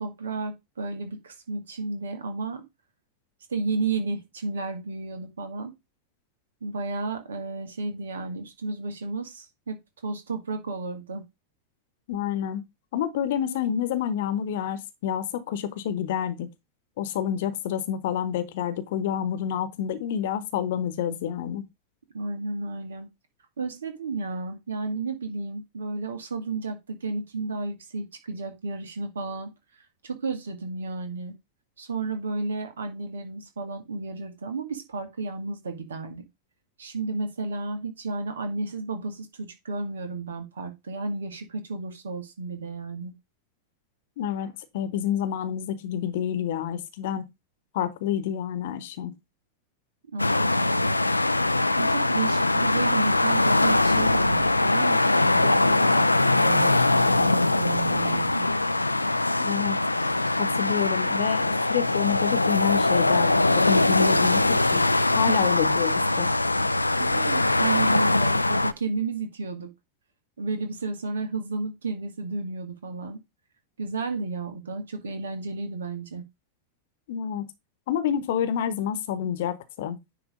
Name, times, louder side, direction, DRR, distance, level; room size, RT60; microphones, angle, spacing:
voice 1, 0.0-2.6 3.5-5.7 6.6-9.8 10.0-11.2 22.1-23.1 23.6-29.5 30.0-31.3 31.8-36.2 36.8-43.1 50.1-51.0 51.8-58.5 67.0-69.7 70.4-73.2 73.8-76.3, right 3 dB, 65° right, 1.9 m, -32 dB
voice 2, 12.1-12.6 12.9-16.5 17.0-21.6 44.2-47.2 47.7-49.1 59.4-59.8 60.4-64.8 65.1-66.3 77.1-77.4 77.9-80.0, left 9 dB, 55° left, 1.1 m, -28 dB
sound 1, 50.2-68.7, left 2 dB, 85° left, 0.4 m, -22 dB
9.9 x 3.4 x 5.1 m
figure-of-eight pair, 90°, 0 cm